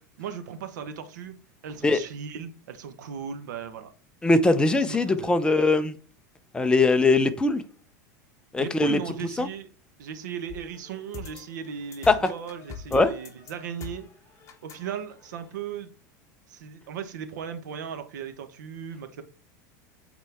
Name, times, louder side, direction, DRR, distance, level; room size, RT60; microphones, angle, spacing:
voice 1, 0.0-1.4 1.6-3.9 4.9-5.3 8.6-9.7 10.0-14.1 14.6-15.9 16.5-19.2, right 7 dB, 85° right, 1.2 m, -37 dB
voice 2, 4.2-6.0 6.5-7.6 8.5-9.0 9.4-9.5 12.1-12.2 12.9-13.1, left 3 dB, 10° left, 0.7 m, -21 dB
sound 1, 10.5-15.5, left 6 dB, 30° left, 1.4 m, -44 dB
8.2 x 4.3 x 3.5 m
supercardioid pair, 125°, 10 cm